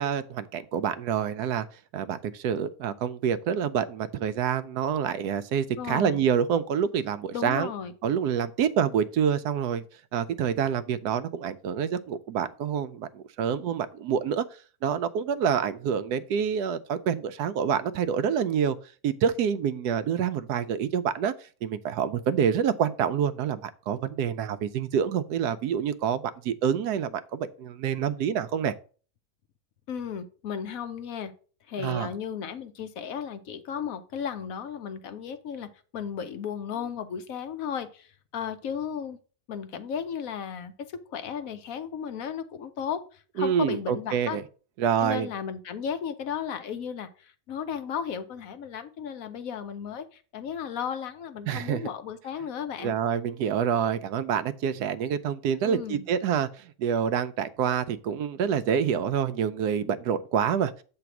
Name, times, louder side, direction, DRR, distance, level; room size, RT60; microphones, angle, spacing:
voice 1, 0.0-1.7 1.9-7.7 8.0-9.8 10.1-14.4 14.8-18.8 19.0-21.3 21.6-28.7 31.8-32.1 43.4-44.4 44.8-45.3 51.5-51.9 52.8-60.7, right 8 dB, 85° right, 1.2 m, -27 dB
voice 2, 5.7-6.2 7.3-7.9 29.9-31.3 31.7-39.2 39.5-40.7 41.1-44.4 45.0-53.0 55.6-56.0, left 7 dB, 65° left, 1.1 m, -35 dB
8.0 x 3.4 x 5.9 m
omnidirectional pair, 1.6 m